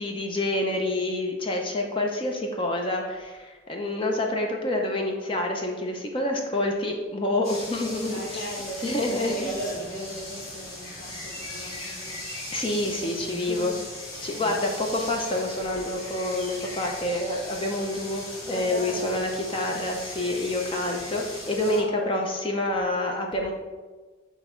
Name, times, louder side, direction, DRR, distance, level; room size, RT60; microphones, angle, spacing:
voice 1, 0.0-8.5 8.8-9.5 12.5-13.7 14.2-23.5, left 1 dB, 25° left, 1 dB, 0.5 m, -27 dB
sound 1, 7.4-21.8, left 1 dB, 90° left, 1.7 m, -39 dB
voice 2, 7.8-12.6 12.9-13.9 14.3-14.6 18.4-19.2 21.6-22.2, right 1 dB, 45° left, -4 dB, 1.6 m, -37 dB
6.1 x 3.5 x 4.4 m, 1.3 s
head